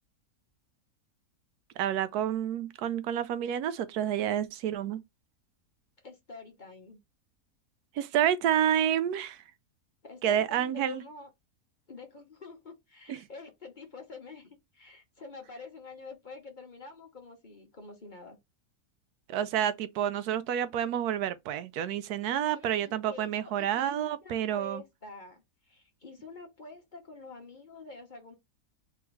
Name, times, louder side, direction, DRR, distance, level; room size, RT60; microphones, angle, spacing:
voice 1, 1.8-5.0 8.0-9.4 10.2-11.0 13.1-13.2 19.3-24.8, right 10 dB, 90° right, 1.1 m, -29 dB
voice 2, 6.0-7.0 10.0-11.3 11.9-18.4 22.5-28.3, left 3 dB, 35° left, 1.1 m, -48 dB
3.5 x 3.1 x 4.6 m
omnidirectional pair, 1.6 m